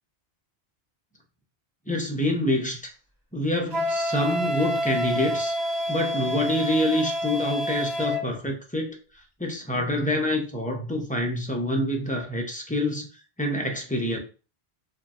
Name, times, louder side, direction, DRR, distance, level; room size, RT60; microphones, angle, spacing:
voice 1, 1.9-2.8 3.3-5.6 5.9-9.0 9.4-13.1 13.4-14.2, left 1 dB, 15° left, 0.3 m, -26 dB
Wind instrument woodwind instrument, 3.7-8.2, equal, 25° right, 0.7 m, -28 dB
2.8 x 2.5 x 2.3 m
omnidirectional pair, 1.0 m